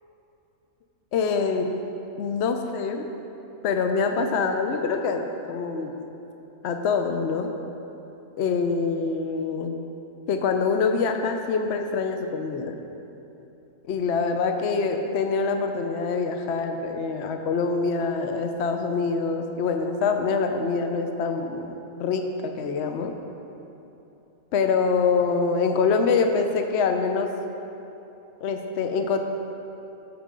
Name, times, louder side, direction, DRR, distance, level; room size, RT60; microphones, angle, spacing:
voice 1, 1.1-1.7 2.2-3.1 3.6-6.0 6.6-7.5 8.4-9.8 10.3-12.8 13.9-23.1 24.5-27.3 28.4-29.2, left 4 dB, 60° left, 5 dB, 0.7 m, -25 dB
13.5 x 7.1 x 3.7 m, 2.9 s
omnidirectional pair, 1.6 m